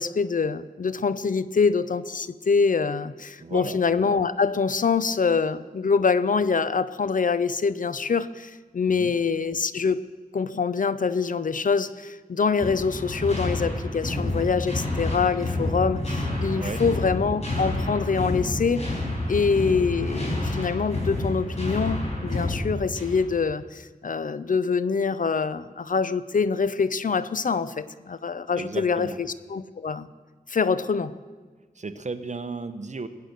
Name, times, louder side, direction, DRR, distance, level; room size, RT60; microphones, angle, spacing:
voice 1, 0.0-10.0 10.3-18.9 19.3-30.1 30.5-31.1, left 5 dB, 60° left, 15 dB, 0.5 m, -25 dB
voice 2, 3.4-3.8 8.9-9.1 16.6-16.8 28.6-29.2 31.8-33.1, right 3 dB, 50° right, 10 dB, 0.9 m, -34 dB
sound 1, 12.6-23.3, left 1 dB, 45° left, 4.7 m, -29 dB
21.0 x 8.3 x 6.6 m, 1.4 s
wide cardioid pair, 90°, 15 cm